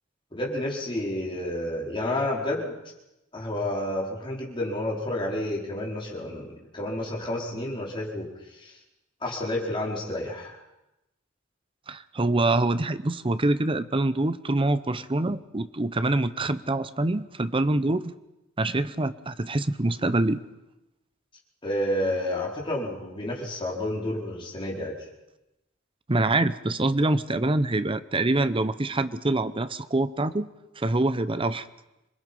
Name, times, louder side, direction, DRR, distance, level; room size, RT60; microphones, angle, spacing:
voice 1, 0.3-2.7 3.3-8.3 8.6-8.7 9.2-10.6 21.6-25.0, left 1 dB, 25° left, -2 dB, 4.6 m, -30 dB
voice 2, 11.9-18.1 18.6-20.4 26.1-30.5 30.8-31.7, right 2 dB, 25° right, 13 dB, 0.8 m, -25 dB
26.5 x 21.5 x 5.5 m, 0.95 s
head